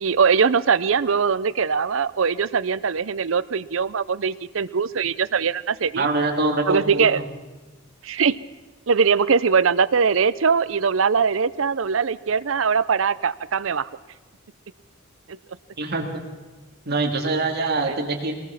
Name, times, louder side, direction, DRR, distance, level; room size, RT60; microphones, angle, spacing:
voice 1, 0.0-6.1 6.7-7.2 8.0-8.4 8.9-13.9 15.3-15.4 17.6-17.9, right 6 dB, 70° right, 16 dB, 0.6 m, -21 dB
voice 2, 5.9-7.2 15.8-16.1 16.9-18.3, right 2 dB, 55° right, 3 dB, 2.5 m, -24 dB
23.0 x 19.0 x 5.9 m, 1.2 s
head